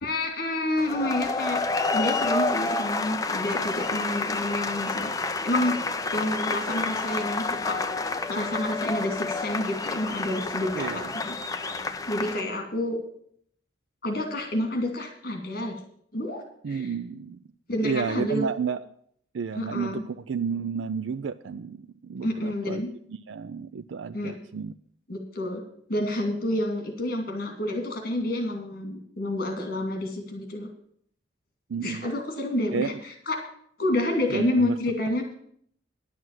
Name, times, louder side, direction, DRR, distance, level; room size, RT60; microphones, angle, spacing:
voice 1, 0.0-1.6 1.9-5.1 5.4-5.8 6.1-7.8 8.3-11.3 12.1-13.0 14.0-15.8 16.1-16.9 17.7-18.5 19.5-20.0 22.2-22.9 24.1-24.3 25.1-25.6 25.9-30.7 31.8-33.4 33.8-35.2, left 1 dB, 50° left, 3 dB, 2.5 m, -29 dB
sound 1, 0.8-12.4, left 3 dB, 20° left, 0.6 m, -29 dB
voice 2, 10.7-11.1 11.6-11.9 16.6-17.4 17.8-18.8 19.3-22.8 23.1-24.7 31.7-32.1 32.7-33.0 34.3-34.7, right 6 dB, 85° right, 11 dB, 0.4 m, -31 dB
11.0 x 6.3 x 8.9 m, 0.65 s
head